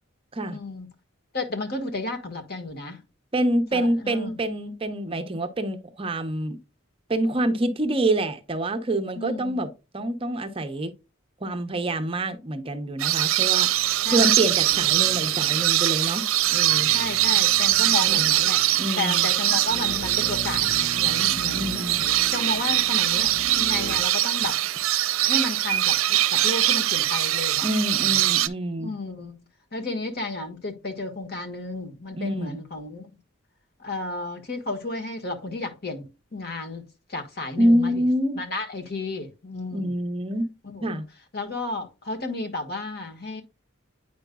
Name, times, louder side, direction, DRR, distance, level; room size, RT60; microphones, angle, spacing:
voice 1, 0.5-0.9 1.3-3.0 3.7-4.3 9.2-9.7 14.0-14.3 16.9-18.6 19.0-21.9 22.3-24.6 25.2-28.2 28.8-29.3 29.7-33.1 33.8-36.8 37.1-38.0 38.3-39.9 40.6-41.0 41.3-43.4, left 2 dB, 50° left, 1.4 m, -32 dB
voice 2, 3.3-6.6 7.1-9.7 9.9-10.9 11.4-13.7 14.1-16.3 16.5-16.9 18.1-18.3 18.8-19.3 21.5-22.0 27.6-28.9 32.1-32.6 37.6-38.4 39.7-40.5 40.8-41.1, right 1 dB, 25° right, 0.7 m, -26 dB
sound 1, 13.0-28.5, right 14 dB, 85° right, 0.5 m, -22 dB
sound 2, 13.5-24.1 24.4-24.5, right 1 dB, 25° left, 1.6 m, -40 dB
9.1 x 5.1 x 2.2 m
head